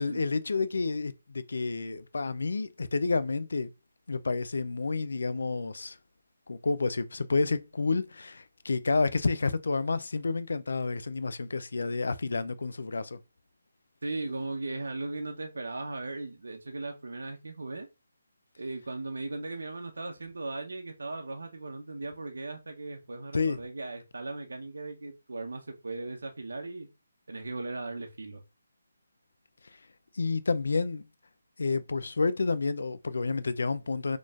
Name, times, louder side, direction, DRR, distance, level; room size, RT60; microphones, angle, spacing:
voice 1, 0.0-3.7 4.1-6.0 6.5-13.2 23.3-23.6 30.1-31.0 31.6-34.2, left 4 dB, 70° left, 0.4 m, -29 dB
voice 2, 14.0-17.9 18.6-26.9 27.3-28.4, right 2 dB, 80° right, 0.8 m, -37 dB
4.2 x 3.1 x 2.4 m
hypercardioid pair, 170°, 0 cm